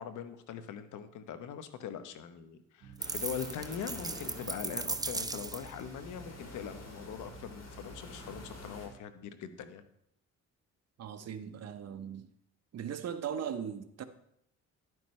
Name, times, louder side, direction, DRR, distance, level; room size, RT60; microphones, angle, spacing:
voice 1, 0.0-9.8, left 8 dB, 80° left, 0.9 m, -42 dB
sound 1, 2.8-9.0, right 7 dB, 85° right, 1.4 m, -53 dB
sound 2, 3.0-8.9, left 3 dB, 60° left, 2.8 m, -49 dB
sound 3, 3.0-5.8, right 3 dB, 15° right, 0.5 m, -37 dB
voice 2, 11.0-12.3 12.7-14.0, right 8 dB, 55° right, 0.9 m, -38 dB
11.0 x 9.2 x 3.2 m
cardioid pair, 90°, 30 cm